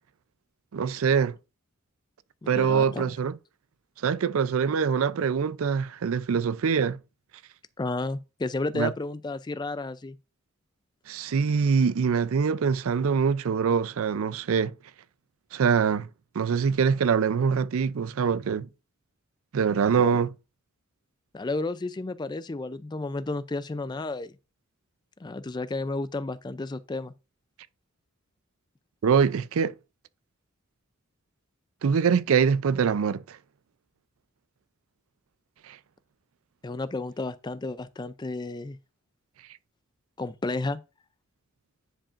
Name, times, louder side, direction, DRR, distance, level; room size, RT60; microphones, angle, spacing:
voice 1, 0.7-1.3 2.5-3.4 4.0-7.0 8.7-8.9 11.1-14.7 15.5-16.1 16.4-18.7 19.5-20.3 29.0-29.7 31.8-33.4 35.7-35.8, right 6 dB, 70° right, 0.4 m, -24 dB
voice 2, 2.4-3.1 7.8-10.2 19.9-20.2 21.3-24.3 25.2-27.1 36.6-38.8 40.2-40.8, left 2 dB, 20° left, 0.3 m, -32 dB
10.0 x 5.0 x 2.5 m
head